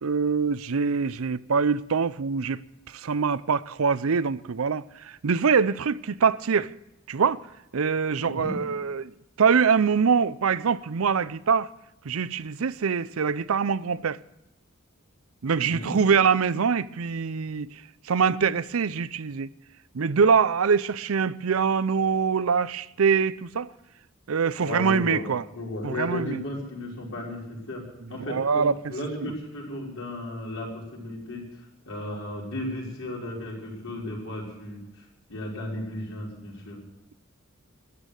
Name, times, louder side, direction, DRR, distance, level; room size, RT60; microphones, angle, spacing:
voice 1, 0.0-2.6 2.9-6.7 7.1-7.4 7.7-9.1 9.4-11.7 12.0-14.2 15.4-17.7 18.1-19.5 19.9-23.7 24.3-25.4 25.8-26.4 28.3-28.7 29.2-29.3, right 6 dB, 90° right, 0.6 m, -24 dB
voice 2, 15.7-16.0 24.6-25.3 25.5-27.8 28.1-31.4 31.8-35.0 35.3-36.8, left 1 dB, 70° left, 5.6 m, -34 dB
13.5 x 11.0 x 8.1 m
head